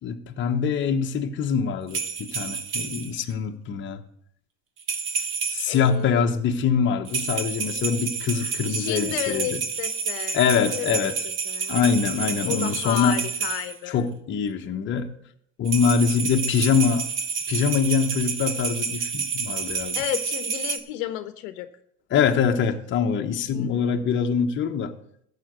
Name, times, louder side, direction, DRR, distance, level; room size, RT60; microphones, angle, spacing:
voice 1, 0.0-4.0 5.5-9.6 10.3-11.2 11.7-13.2 13.9-15.1 15.6-17.1 17.5-20.0 22.1-24.9, left 6 dB, 40° left, 1.2 m, -24 dB
sound 1, 1.9-3.2 4.8-5.9 7.0-13.7 15.6-20.8, right 5 dB, 40° right, 1.7 m, -29 dB
voice 2, 5.7-6.2 8.4-11.1 11.5-14.0 19.9-21.7 23.5-24.0, left 13 dB, 80° left, 1.0 m, -33 dB
14.0 x 5.0 x 8.2 m
supercardioid pair, 125°, 31 cm